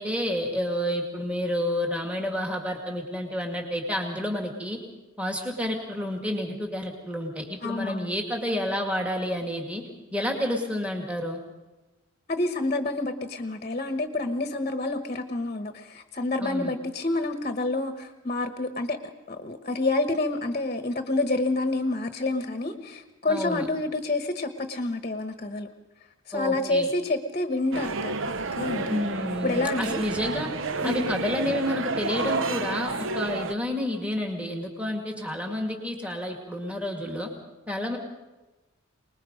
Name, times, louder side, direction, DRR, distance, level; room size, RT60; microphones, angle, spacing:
voice 1, 0.0-4.8 5.2-9.8 10.1-11.4 16.4-16.7 23.3-23.7 26.3-26.9 28.9-30.5 30.8-37.3 37.7-38.0, left 1 dB, 5° right, 2 dB, 2.2 m, -30 dB
voice 2, 7.6-8.1 12.3-19.0 19.3-25.7 26.3-28.1 28.5-29.0 29.4-30.0 30.8-31.1, left 2 dB, 35° left, 7 dB, 1.1 m, -28 dB
sound 1, 27.7-33.5, right 3 dB, 65° right, 0.8 m, -30 dB
25.0 x 20.0 x 5.2 m, 1.1 s
head